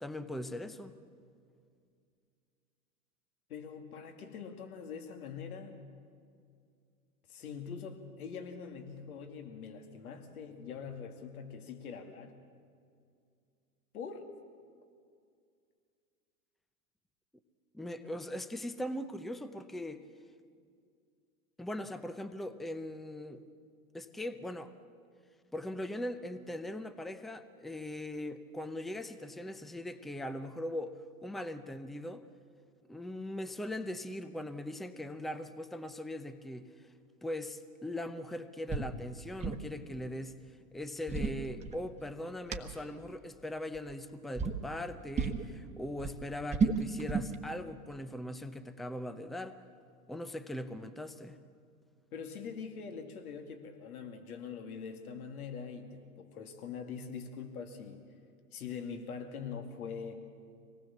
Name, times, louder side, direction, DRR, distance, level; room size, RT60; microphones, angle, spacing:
voice 1, 0.0-0.9 17.7-20.0 21.6-23.4 23.9-24.7 25.5-30.9 31.2-32.2 32.9-36.7 37.2-40.4 40.7-49.6 50.1-51.4, left 1 dB, ahead, 11 dB, 0.7 m, -40 dB
voice 2, 3.5-5.8 7.3-12.4 13.9-14.3 52.1-58.0 58.5-60.3, left 6 dB, 75° left, 5 dB, 2.5 m, -43 dB
sound 1, 38.7-38.9 39.2-39.7 40.8-42.1 42.5-42.6 43.7-44.0 44.4-44.6 45.1-45.5 45.8-47.4, right 5 dB, 15° right, 1.3 m, -32 dB
25.0 x 19.0 x 7.2 m, 2.3 s
hypercardioid pair, 110°, 44 cm